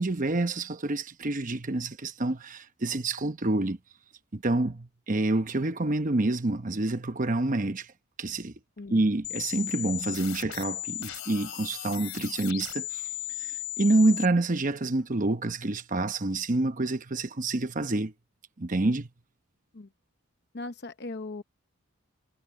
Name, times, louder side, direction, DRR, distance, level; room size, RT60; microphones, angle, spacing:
voice 1, 0.0-3.8 4.3-7.9 8.2-8.5 8.9-13.1 13.4-18.1 18.6-19.1, right 2 dB, 40° right, 0.9 m, -27 dB
sound 1, 9.2-14.3, left 15 dB, 85° left, 2.8 m, -36 dB
voice 2, 20.5-21.4, left 2 dB, 50° left, 0.8 m, -38 dB
head